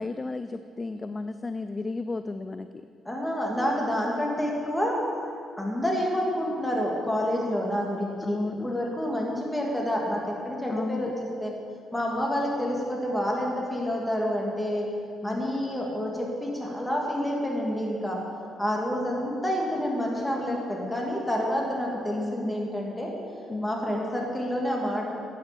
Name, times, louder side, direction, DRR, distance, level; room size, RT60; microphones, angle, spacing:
voice 1, 0.0-2.7 8.2-8.7 10.7-11.1 15.2-15.5 22.1-22.6 23.5-23.8, left 3 dB, 25° left, 10 dB, 0.4 m, -33 dB
voice 2, 3.0-5.0 5.6-8.4 8.6-11.1 11.4-11.5 11.9-14.9 15.2-18.2 18.6-23.1 23.6-25.1, equal, 10° left, -2 dB, 2.7 m, -28 dB
14.0 x 9.1 x 5.3 m, 2.4 s
cardioid pair, 90°, 0 cm